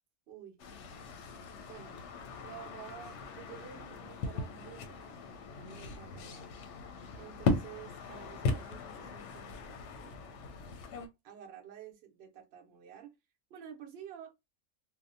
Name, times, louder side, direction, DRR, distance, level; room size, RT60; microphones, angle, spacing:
voice 1, 0.3-0.6 1.6-2.0 2.4-5.0 5.5-6.4 7.2-10.4 11.2-13.1 13.5-14.3, right 9 dB, 55° right, 0.9 m, -51 dB
sound 1, 0.6-11.1, left 3 dB, 65° left, 0.8 m, -38 dB
2.7 x 2.1 x 2.5 m
omnidirectional pair, 1.4 m